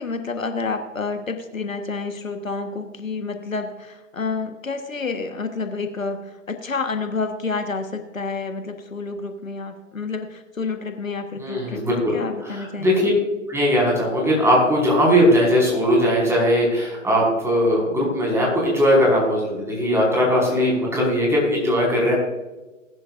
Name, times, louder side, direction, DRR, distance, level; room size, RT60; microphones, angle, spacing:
voice 1, 0.0-13.1, left 4 dB, 80° left, 7 dB, 1.4 m, -29 dB
voice 2, 11.4-13.1 13.5-22.1, equal, 5° right, -3 dB, 5.0 m, -19 dB
20.0 x 11.0 x 2.5 m, 1.1 s
figure-of-eight pair, 115°, 39 cm